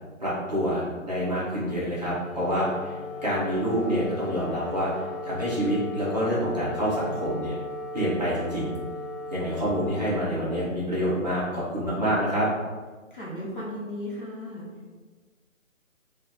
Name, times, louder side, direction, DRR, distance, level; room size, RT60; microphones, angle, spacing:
voice 1, 0.2-3.0 3.2-7.6 7.9-8.7 9.3-12.5, equal, 30° right, -9 dB, 1.0 m, -27 dB
Wind instrument woodwind instrument, 2.0-11.3, left 2 dB, ahead, 0.3 m, -37 dB
voice 2, 13.1-14.7, left 1 dB, 40° left, -6 dB, 0.9 m, -35 dB
3.3 x 2.4 x 3.8 m, 1.3 s
hypercardioid pair, 180°, 40 cm